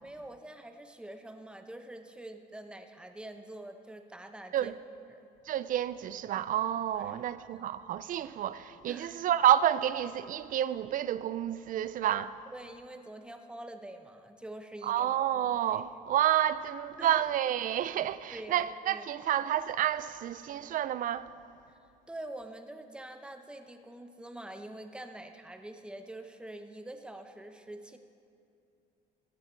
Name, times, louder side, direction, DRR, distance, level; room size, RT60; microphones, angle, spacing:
voice 1, 0.0-4.7 5.1-5.3 7.0-7.5 8.9-9.1 12.5-15.1 15.7-15.8 17.0-17.2 18.3-19.0 22.1-28.0, right 1 dB, 5° right, 0.9 m, -45 dB
voice 2, 5.5-12.4 14.8-21.3, right 11 dB, 55° right, 0.5 m, -29 dB
15.5 x 11.5 x 4.6 m
cardioid pair, 110°, 17 cm